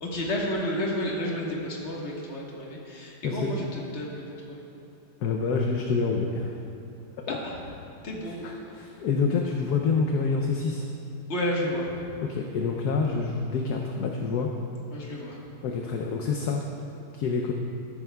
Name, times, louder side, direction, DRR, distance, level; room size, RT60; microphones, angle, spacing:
voice 1, 0.0-4.6 7.3-7.6 8.0-8.4 11.3-12.0 13.0-13.2 14.9-15.4, left 1 dB, 35° left, -3 dB, 1.6 m, -31 dB
voice 2, 5.2-6.5 7.3-7.4 8.4-10.8 12.2-14.5 15.6-16.6 17.1-17.5, left 4 dB, 65° left, 1 dB, 1.1 m, -27 dB
13.5 x 11.5 x 2.3 m, 2.7 s
omnidirectional pair, 2.1 m